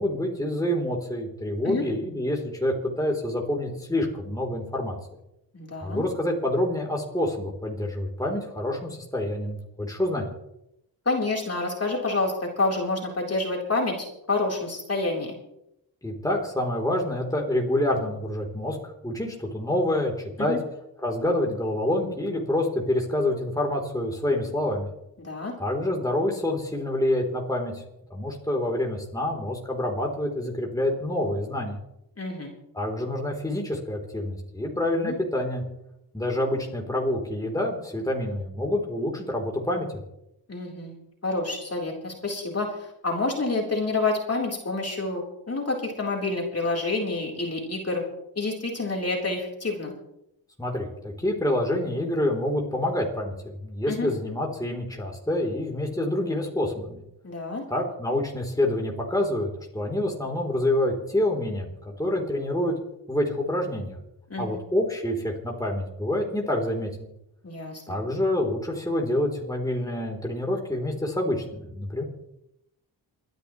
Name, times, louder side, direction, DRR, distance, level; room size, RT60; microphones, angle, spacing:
voice 1, 0.0-4.9 5.8-10.2 16.0-20.1 20.4-20.6 21.0-24.9 25.6-27.8 28.1-31.8 32.7-35.6 36.1-39.9 50.6-57.0 57.7-59.5 59.7-61.7 62.0-62.8 63.1-64.0 64.4-67.1 67.9-72.0, left 1 dB, 10° left, -1 dB, 3.5 m, -27 dB
voice 2, 5.5-6.0 11.1-13.9 14.3-15.3 20.4-20.6 25.2-25.5 32.2-32.5 34.9-35.2 40.5-40.9 41.2-48.0 48.4-49.9 53.9-54.1 57.2-57.6 64.3-64.6 67.4-68.0, left 3 dB, 35° left, -1 dB, 3.8 m, -28 dB
28.5 x 10.5 x 3.1 m, 0.82 s
cardioid pair, 60°, 44 cm